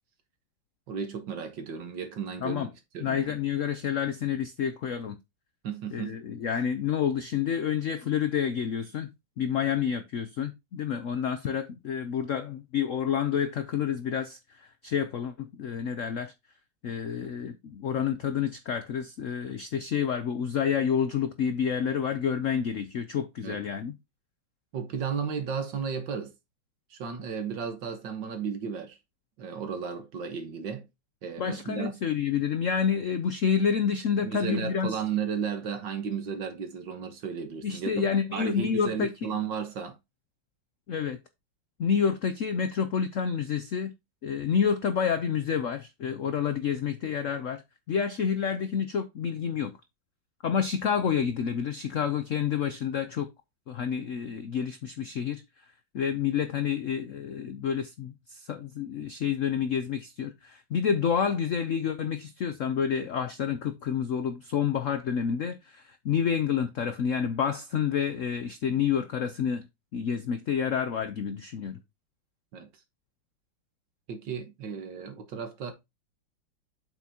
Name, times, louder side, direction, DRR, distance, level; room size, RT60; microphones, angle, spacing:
voice 1, 0.9-3.3 5.6-6.2 23.4-23.6 24.7-26.3 26.9-29.0 29.4-30.9 31.2-31.9 34.2-40.0 72.5-72.7 74.1-75.7, right 7 dB, 65° right, 1.9 m, -34 dB
voice 2, 3.0-5.2 5.9-9.1 9.4-16.3 16.8-23.9 31.4-35.0 37.6-39.1 40.9-41.2 41.8-43.9 44.2-47.6 47.9-49.7 50.4-53.3 53.7-55.4 55.9-69.7 69.9-71.8, left 7 dB, 80° left, 0.7 m, -29 dB
8.1 x 6.0 x 2.8 m
omnidirectional pair, 2.2 m